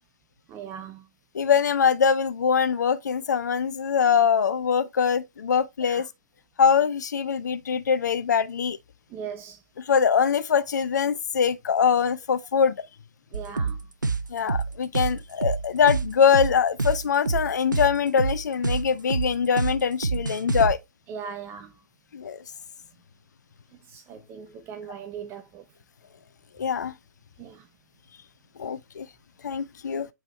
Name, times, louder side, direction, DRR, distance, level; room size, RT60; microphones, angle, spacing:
voice 1, 0.5-1.1 5.8-6.0 9.1-9.6 13.3-13.8 21.1-21.7 23.9-25.6 27.4-27.7, right 7 dB, 20° right, 0.6 m, -39 dB
voice 2, 1.3-6.1 6.6-8.8 9.8-12.9 14.3-20.8 22.1-22.4 26.6-26.9 28.6-29.1 29.4-30.1, left 7 dB, 65° left, 0.4 m, -23 dB
sound 1, 13.3-20.7, right 4 dB, 85° right, 0.6 m, -27 dB
7.6 x 4.6 x 3.0 m
figure-of-eight pair, 115°, 10 cm